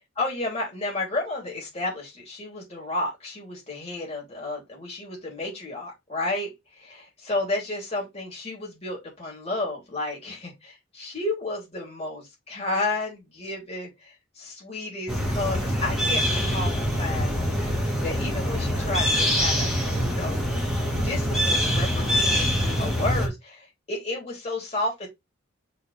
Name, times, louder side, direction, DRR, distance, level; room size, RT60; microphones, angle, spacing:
voice 1, 0.2-17.3 18.0-19.7 20.0-20.6 20.9-25.1, left 2 dB, 30° left, 3.7 m, -32 dB
sound 1, 15.1-23.3, equal, ahead, 2.0 m, -24 dB
6.6 x 4.1 x 3.6 m
head